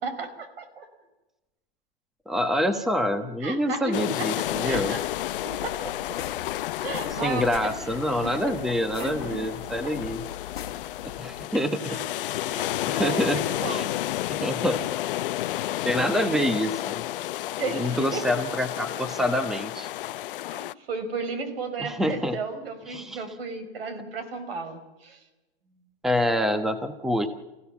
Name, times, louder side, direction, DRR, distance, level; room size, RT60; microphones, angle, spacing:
voice 1, 0.0-0.9 3.4-5.0 5.4-6.2 6.8-7.7 8.2-8.4 9.0-9.4 9.8-9.9 11.9-12.0 12.4-14.0 17.6-18.3 20.5-25.2, right 3 dB, 75° right, 11 dB, 5.1 m, -34 dB
voice 2, 2.3-4.9 7.1-10.2 11.2-12.0 12.9-13.4 13.7-13.8 14.3-14.8 15.8-17.0 17.7-19.9 21.8-22.4 22.9-23.2 26.0-27.3, equal, ahead, 9 dB, 1.1 m, -26 dB
sound 1, 3.9-20.7, left 14 dB, 60° left, 0.7 m, -31 dB
sound 2, 4.5-11.4, left 10 dB, 80° left, 1.5 m, -40 dB
29.0 x 16.0 x 7.1 m, 1.0 s
hypercardioid pair, 140°, 30 cm